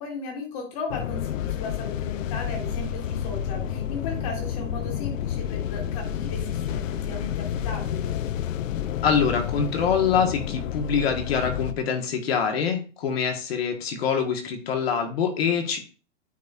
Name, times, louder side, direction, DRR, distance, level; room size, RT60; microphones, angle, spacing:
voice 1, 0.0-8.2, left 3 dB, 30° left, 2 dB, 1.5 m, -36 dB
sound 1, 0.9-11.7, left 10 dB, 85° left, 0.6 m, -30 dB
voice 2, 9.0-15.8, left 6 dB, 50° left, 4 dB, 1.5 m, -25 dB
9.1 x 4.2 x 2.5 m, 0.36 s
hypercardioid pair, 170°, 38 cm